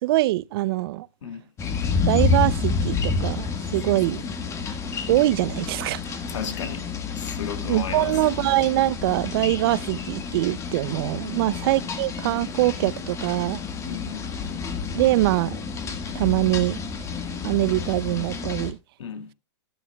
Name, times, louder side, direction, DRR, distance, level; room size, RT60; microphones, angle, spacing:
voice 1, 0.0-1.1 2.1-4.2 5.1-6.2 7.6-13.6 14.9-15.6 16.1-16.8 17.4-18.8, right 17 dB, 55° right, 0.4 m, -23 dB
sound 1, 1.6-18.7, left 5 dB, 20° left, 1.6 m, -29 dB
voice 2, 3.9-4.2 6.3-6.9 7.2-8.2 11.3-11.7 13.8-14.3 19.0-19.3, left 7 dB, 85° left, 2.1 m, -35 dB
13.0 x 11.0 x 2.3 m
hypercardioid pair, 145°, 15 cm